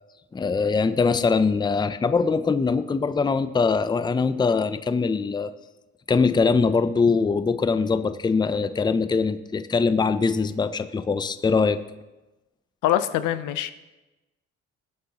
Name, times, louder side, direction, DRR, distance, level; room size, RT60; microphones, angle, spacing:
voice 1, 0.3-5.5 6.1-11.8, left 4 dB, 15° left, 12 dB, 0.5 m, -22 dB
voice 2, 12.8-13.7, left 12 dB, 90° left, 12 dB, 0.7 m, -23 dB
18.5 x 7.7 x 2.9 m, 1.1 s
cardioid pair, 90°, 30 cm